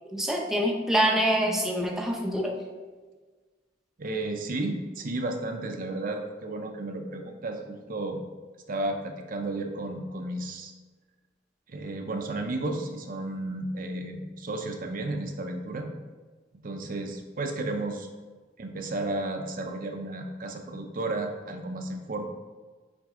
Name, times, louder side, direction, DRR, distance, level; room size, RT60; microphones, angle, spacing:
voice 1, 0.1-2.5, equal, ahead, 0 dB, 0.6 m, -25 dB
voice 2, 4.0-8.2 8.7-10.7 11.7-15.9 16.6-18.1 18.6-22.2, right 2 dB, 45° right, 3 dB, 0.6 m, -33 dB
6.0 x 4.6 x 3.7 m, 1.4 s
head